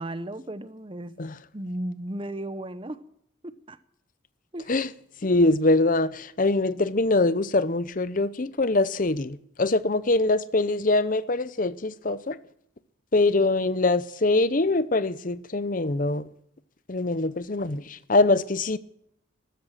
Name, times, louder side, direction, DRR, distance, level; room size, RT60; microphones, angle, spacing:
voice 1, 0.0-1.2 1.5-3.0 3.4-3.8 4.5-4.8, right 1 dB, 25° right, 0.8 m, -35 dB
voice 2, 5.2-12.4 13.1-16.2 16.9-18.8, left 2 dB, 40° left, 0.7 m, -23 dB
13.5 x 13.0 x 7.5 m
head